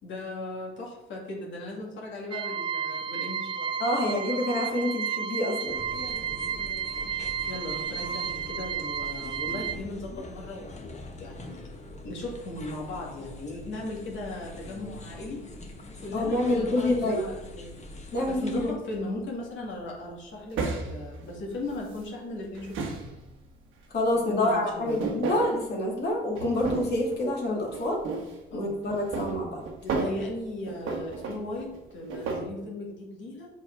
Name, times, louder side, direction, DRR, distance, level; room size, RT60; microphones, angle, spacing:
voice 1, 0.0-3.8 7.5-11.6 12.0-15.4 16.0-17.8 18.2-23.0 24.3-25.1 28.5-28.8 29.8-33.5, left 2 dB, 70° left, -2 dB, 2.1 m, -37 dB
sound 1, 2.3-9.8, right 7 dB, 25° right, 0.3 m, -32 dB
voice 2, 3.8-5.8 16.1-17.2 18.1-18.8 23.9-28.0 28.5-29.6, left 1 dB, 55° left, -1 dB, 2.1 m, -27 dB
sound 2, 5.7-18.7, left 2 dB, 35° left, 1.3 m, -43 dB
sound 3, 18.9-19.2 20.5-22.0 22.4-23.5 24.6-25.7 26.4-27.2 27.7-28.4 28.9-30.3 30.7-32.5, right 4 dB, 85° right, 1.2 m, -33 dB
5.7 x 5.0 x 4.5 m, 1.0 s
cardioid pair, 90°, 20 cm